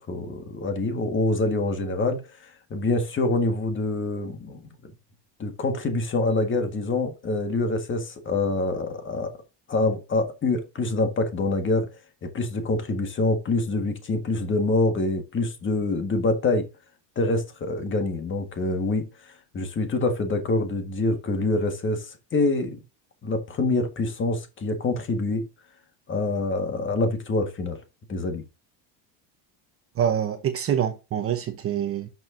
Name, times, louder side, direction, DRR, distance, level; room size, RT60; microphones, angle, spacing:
voice 1, 0.0-4.7 5.4-9.3 9.7-11.9 12.2-16.7 17.2-19.1 19.5-22.8 23.2-25.4 26.1-27.8 28.1-28.4, left 2 dB, 25° left, 1.7 m, -25 dB
voice 2, 30.0-32.1, right 9 dB, 30° right, 0.9 m, -25 dB
11.0 x 6.2 x 2.7 m
cardioid pair, 150°, 45 cm